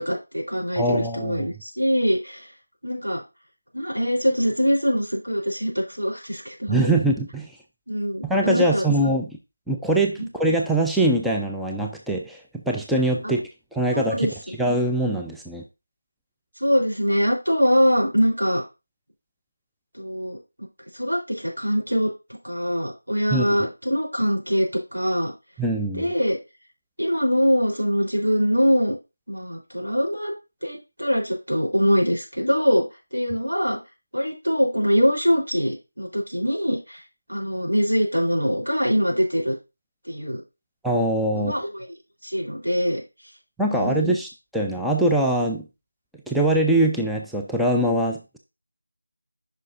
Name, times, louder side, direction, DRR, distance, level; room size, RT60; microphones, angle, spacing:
voice 1, 0.0-2.5 2.8-3.2 3.7-6.9 7.9-8.9 10.2-10.3 13.9-14.6 16.6-18.6 20.0-20.4 20.9-22.1 22.4-25.3 25.9-26.4 27.0-29.0 29.3-30.3 30.6-32.9 33.1-33.8 34.1-37.0 37.3-39.6 40.1-40.4 41.3-41.9 42.2-43.0 43.7-44.2, equal, 90° right, -1 dB, 3.6 m, -23 dB
voice 2, 0.8-1.5 6.7-7.5 8.2-9.3 9.7-13.4 13.7-14.3 14.6-15.6 23.3-23.5 25.6-26.1 40.8-41.5 43.6-45.7 46.3-48.4, right 1 dB, ahead, -1 dB, 0.3 m, -23 dB
9.1 x 5.6 x 2.5 m, 0.27 s
figure-of-eight pair, 165°, 0 cm